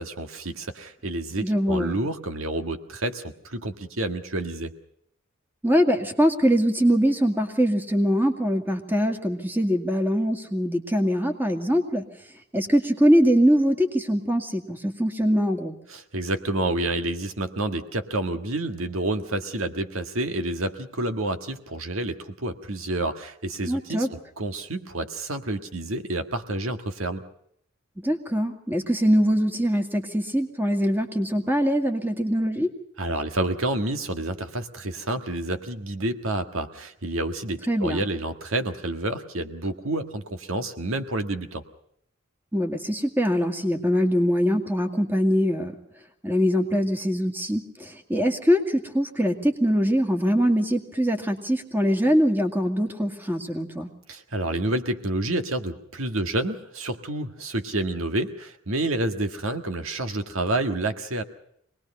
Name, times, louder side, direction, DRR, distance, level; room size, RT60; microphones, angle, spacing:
voice 1, 0.0-4.7 15.9-27.2 33.0-41.6 54.1-61.2, right 2 dB, 80° right, 7 dB, 1.7 m, -29 dB
voice 2, 1.4-1.9 5.6-12.1 12.5-15.8 23.7-24.1 28.0-32.7 37.7-38.0 42.5-45.7 46.2-53.9, equal, 10° right, 5 dB, 2.2 m, -23 dB
25.0 x 19.5 x 5.5 m, 0.69 s
head